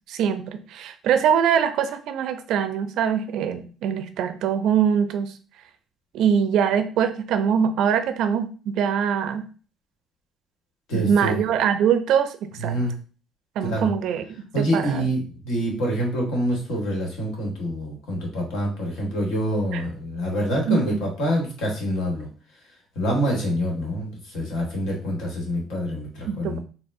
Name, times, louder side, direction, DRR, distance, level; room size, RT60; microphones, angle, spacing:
voice 1, 0.1-5.3 6.1-9.5 10.9-12.8 13.6-14.2 14.6-15.0 19.7-19.8 20.7-20.8 26.3-26.6, right 8 dB, 70° right, 9 dB, 0.4 m, -23 dB
voice 2, 10.9-11.4 12.6-13.0 13.6-13.9 14.5-22.3 22.9-26.6, equal, 75° left, -1 dB, 1.2 m, -26 dB
4.1 x 2.1 x 2.5 m, 0.39 s
supercardioid pair, 60°, 0 cm